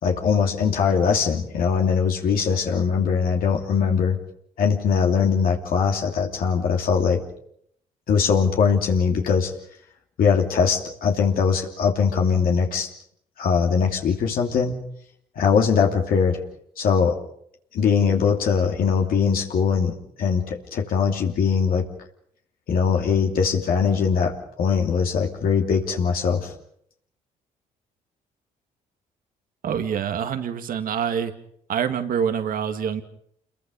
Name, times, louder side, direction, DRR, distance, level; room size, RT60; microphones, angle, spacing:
voice 1, 0.0-4.2 4.6-7.2 8.1-9.5 10.2-12.9 13.4-14.7 15.4-16.4 16.8-17.2 17.7-19.9 20.2-21.8 22.7-26.5, left 6 dB, 65° left, 1 dB, 2.9 m, -21 dB
voice 2, 29.6-31.3 31.7-33.0, right 8 dB, 65° right, 8 dB, 2.2 m, -26 dB
27.5 x 22.0 x 5.5 m, 0.69 s
supercardioid pair, 65°, 16 cm